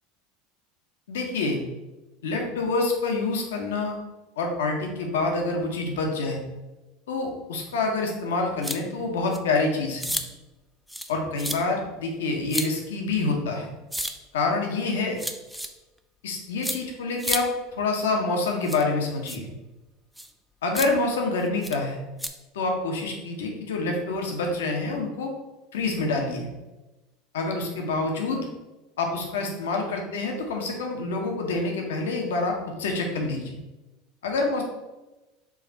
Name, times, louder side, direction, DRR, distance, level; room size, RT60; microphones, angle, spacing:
voice 1, 1.1-1.6 2.2-4.0 4.4-6.4 7.1-10.1 11.1-13.7 14.3-15.2 16.2-19.5 20.6-22.0 22.5-25.3 25.7-26.5 27.3-28.5 29.0-33.5 34.2-34.6, left 3 dB, 80° left, 2 dB, 0.8 m, -27 dB
sound 1, 8.6-8.8 9.3-9.4 10.0-10.2 10.9-11.1 11.4-11.6 12.5-12.7 13.9-14.1 15.2-15.7 16.6-16.8 17.2-17.4 18.6-18.8 19.3-19.4 20.2-20.3 20.7-20.9 21.6-21.8 22.2-22.3, equal, 5° right, 0.4 m, -30 dB
4.7 x 2.5 x 4.3 m, 1.1 s
hypercardioid pair, 85°, 0 cm